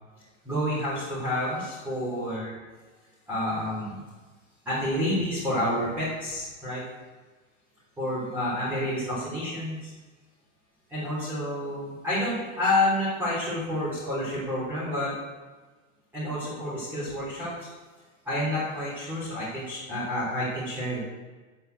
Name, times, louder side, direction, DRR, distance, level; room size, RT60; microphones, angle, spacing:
voice 1, 0.4-2.5 3.3-4.0 4.7-6.8 8.0-9.9 10.9-15.1 16.1-17.7 18.3-21.0, left 1 dB, 5° right, -12 dB, 3.5 m, -29 dB
9.8 x 7.6 x 8.0 m, 1.3 s
supercardioid pair, 175°, 41 cm